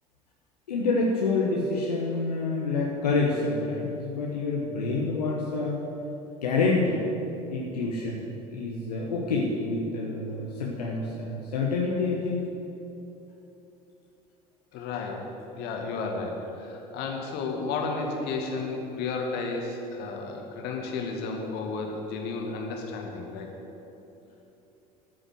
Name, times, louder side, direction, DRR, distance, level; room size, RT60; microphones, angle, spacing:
voice 1, 0.7-5.8 6.4-7.0 7.5-12.5, left 3 dB, 80° left, -2 dB, 1.1 m, -27 dB
voice 2, 14.7-15.3 15.6-23.5, left 4 dB, 55° left, 1 dB, 2.1 m, -32 dB
12.5 x 6.3 x 7.7 m, 2.9 s
figure-of-eight pair, 65°, 20 cm